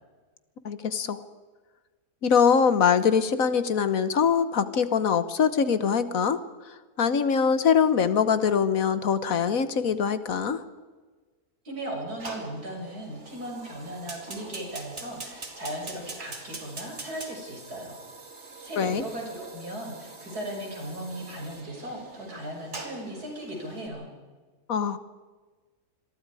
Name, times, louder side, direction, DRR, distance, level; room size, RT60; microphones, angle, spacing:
voice 1, 0.6-1.2 2.2-6.4 7.0-10.6 18.8-19.0 24.7-25.0, left 6 dB, 65° left, 13 dB, 1.5 m, -23 dB
voice 2, 11.7-18.0 18.6-24.1, right 1 dB, 80° right, 0 dB, 6.9 m, -37 dB
Fire, 12.2-23.9, right 3 dB, 45° right, 2.8 m, -43 dB
27.0 x 22.5 x 4.8 m, 1.3 s
omnidirectional pair, 1.6 m